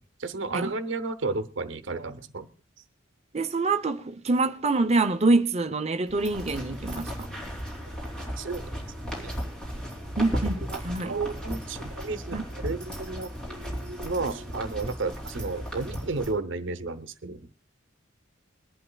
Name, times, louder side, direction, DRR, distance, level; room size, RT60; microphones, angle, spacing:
voice 1, 0.2-2.5 8.4-8.7 9.2-9.3 10.7-13.3 14.0-17.5, right 3 dB, 70° right, 0.8 m, -32 dB
voice 2, 3.3-7.3 10.2-11.2 12.3-12.4, right 3 dB, 35° right, 0.7 m, -25 dB
sound 1, 6.1-16.3, equal, 5° left, 3.0 m, -35 dB
22.5 x 11.0 x 2.3 m
head